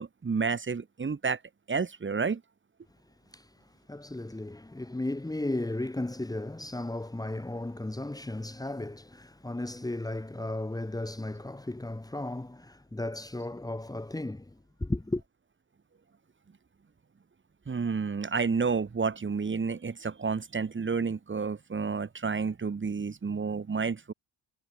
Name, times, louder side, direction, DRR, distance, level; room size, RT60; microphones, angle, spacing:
voice 1, 0.0-1.4 1.7-2.4 17.7-24.1, right 5 dB, 25° right, 6.4 m, -30 dB
voice 2, 3.3-15.2, left 2 dB, 10° left, 4.9 m, -35 dB
cardioid pair, 160°, 44 cm